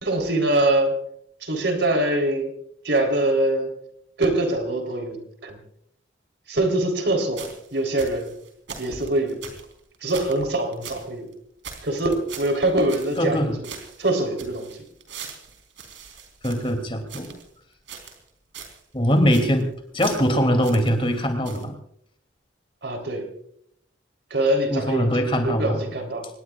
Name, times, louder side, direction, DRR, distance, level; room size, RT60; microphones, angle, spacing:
voice 1, 0.0-1.0 1.4-2.5 2.8-3.7 4.2-5.6 6.5-8.3 8.8-9.4 10.0-11.3 11.8-13.7 14.0-14.9 22.8-23.3 24.3-26.3, right 1 dB, 70° right, 4 dB, 3.7 m, -24 dB
sound 1, 7.3-11.1 11.3-11.4 11.6-13.4 13.6-17.5 17.9-18.3 18.5-18.8 19.1-19.6 20.0-21.2 21.4-21.6, right 6 dB, 85° right, 4.0 m, -41 dB
voice 2, 13.2-13.5 16.4-17.3 18.9-19.7 19.9-21.7 24.7-25.8, equal, 30° left, 5 dB, 2.8 m, -22 dB
26.0 x 20.5 x 2.4 m, 0.69 s
head